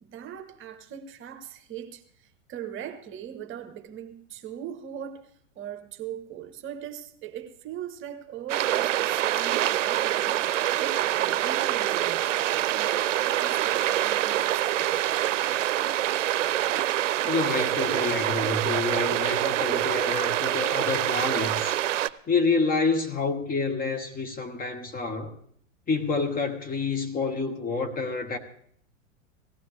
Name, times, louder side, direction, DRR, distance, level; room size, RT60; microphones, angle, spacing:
voice 1, 0.0-16.0, right 9 dB, 30° right, 1.1 m, -40 dB
sound 1, 8.5-22.1, right 13 dB, 75° right, 0.6 m, -25 dB
voice 2, 17.2-21.8 22.3-25.3 25.9-28.4, left 4 dB, 25° left, 1.4 m, -28 dB
18.0 x 14.0 x 3.3 m
hypercardioid pair, 100°, 38 cm